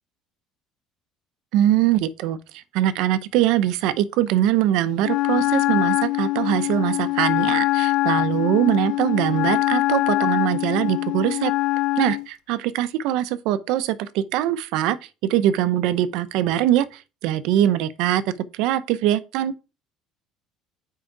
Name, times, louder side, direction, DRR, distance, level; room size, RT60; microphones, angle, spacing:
voice 1, 1.5-11.5 12.0-15.0 15.3-18.2 18.5-19.6, right 12 dB, 70° right, 0.6 m, -22 dB
Wind instrument woodwind instrument, 5.0-12.3, left 19 dB, 70° left, 0.4 m, -23 dB
6.4 x 4.7 x 4.5 m
cardioid pair, 170°, 0 cm